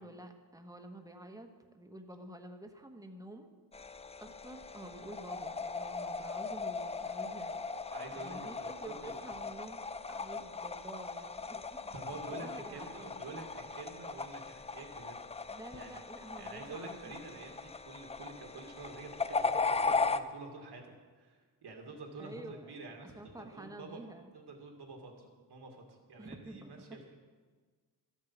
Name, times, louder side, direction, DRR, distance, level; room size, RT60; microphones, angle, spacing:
voice 1, 0.0-1.5 1.7-7.7 8.1-13.2 15.5-17.3 22.2-22.7 23.0-24.3 26.2-26.7, right 1 dB, 10° right, 5 dB, 1.3 m, -49 dB
sound 1, 3.7-20.2, left 4 dB, 15° left, 0.4 m, -38 dB
voice 2, 7.9-9.2 10.3-10.4 11.9-15.2 15.7-16.0 16.4-24.0 24.3-27.2, right 3 dB, 65° right, 2 dB, 2.2 m, -48 dB
13.5 x 8.4 x 7.2 m, 1.5 s
cardioid pair, 105°, 42 cm